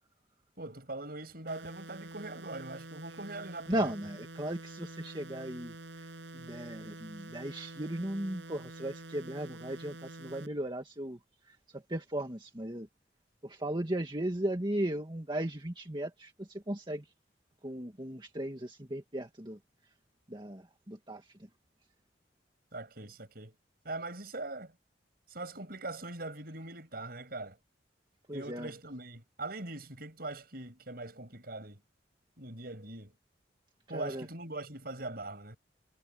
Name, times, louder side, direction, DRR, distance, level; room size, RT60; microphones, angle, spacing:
voice 1, 0.6-3.9 22.7-23.5 23.8-24.7 25.3-27.6 28.3-31.8 32.4-33.1 33.9-35.6, right 2 dB, 55° right, 6.8 m, -41 dB
sound 1, 1.5-10.5, right 1 dB, 85° right, 6.8 m, -47 dB
voice 2, 3.7-12.9 13.4-17.1 17.6-19.6 20.3-21.5 28.3-28.7 33.9-34.3, right 1 dB, 25° right, 2.0 m, -37 dB
head